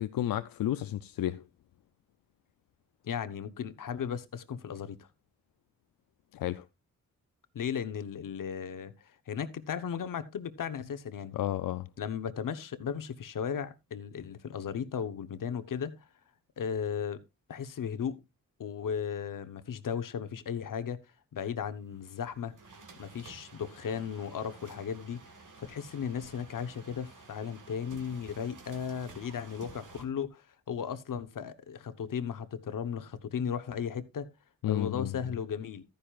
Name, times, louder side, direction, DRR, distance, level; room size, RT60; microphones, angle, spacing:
voice 1, 0.0-1.4 6.3-6.6 11.3-11.9 34.6-35.2, left 13 dB, 85° left, 0.5 m, -32 dB
voice 2, 3.0-5.1 7.5-8.9 9.3-11.3 12.0-16.0 16.6-17.2 17.5-18.2 18.6-21.0 21.3-22.5 23.0-25.2 25.6-34.3 34.7-35.8, left 7 dB, 70° left, 1.0 m, -36 dB
sound 1, 21.8-30.0, right 4 dB, 65° right, 2.1 m, -52 dB
13.0 x 10.5 x 2.4 m
cardioid pair, 75°, 33 cm